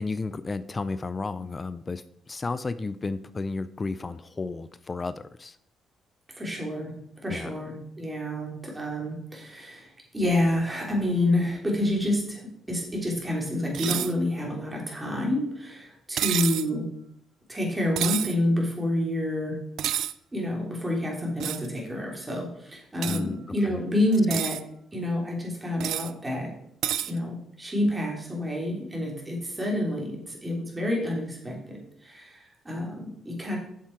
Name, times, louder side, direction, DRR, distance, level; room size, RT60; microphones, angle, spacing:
voice 1, 0.0-5.6 7.3-7.5 23.0-23.4 23.6-23.8, left 3 dB, 30° left, 15 dB, 0.4 m, -33 dB
voice 2, 6.4-6.9 7.2-16.9 17.5-19.6 20.3-24.6 24.9-26.5 27.0-33.6, left 1 dB, 15° right, -1 dB, 3.2 m, -28 dB
sound 1, 13.7-14.1 16.2-16.7 18.0-18.3 19.8-20.1 21.4-21.7 23.0-23.2 24.1-24.6 25.8-26.1 26.8-27.1, right 11 dB, 75° right, 0.4 m, -29 dB
7.4 x 7.2 x 4.6 m, 0.71 s
cardioid pair, 90°, 0 cm